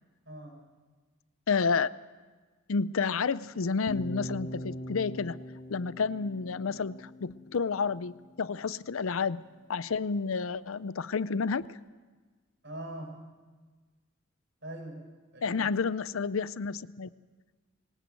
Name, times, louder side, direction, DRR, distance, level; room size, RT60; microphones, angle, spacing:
voice 1, 0.3-0.6 12.6-13.3 14.6-15.7, right 1 dB, 55° right, 1 dB, 5.5 m, -43 dB
voice 2, 1.5-1.9 2.7-5.4 5.7-9.4 9.7-11.8 15.4-17.1, left 5 dB, 80° left, 17 dB, 0.6 m, -30 dB
sound 1, 3.9-7.9, equal, 40° left, 1.5 m, -42 dB
21.0 x 19.5 x 7.7 m, 1.4 s
head